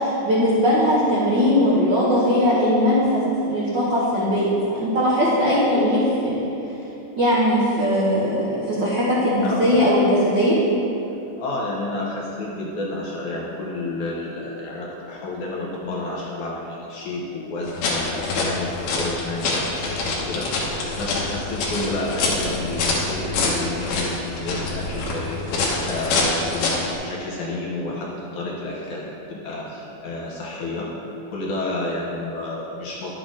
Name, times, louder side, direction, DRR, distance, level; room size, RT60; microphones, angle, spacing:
voice 1, 0.0-6.4 7.2-10.6, equal, 80° right, -7 dB, 1.0 m, -19 dB
voice 2, 4.1-4.4 9.4-9.8 11.4-30.9 31.3-33.1, left 2 dB, 65° left, -4 dB, 2.2 m, -30 dB
sound 1, 17.6-26.9, left 3 dB, 85° left, 3.2 m, -25 dB
11.0 x 8.3 x 3.8 m, 2.8 s
omnidirectional pair, 4.3 m